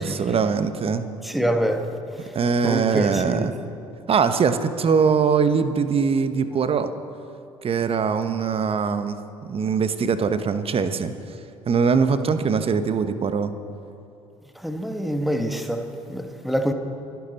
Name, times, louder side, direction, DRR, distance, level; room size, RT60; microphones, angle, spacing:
voice 1, 0.0-1.1 2.3-3.5 4.1-6.9 7.6-11.1 11.7-13.5, right 5 dB, 35° right, 1.0 m, -22 dB
voice 2, 1.2-1.9 2.6-3.5 14.6-16.7, equal, ahead, 1.4 m, -26 dB
25.0 x 10.5 x 4.1 m
figure-of-eight pair, 55°, 17 cm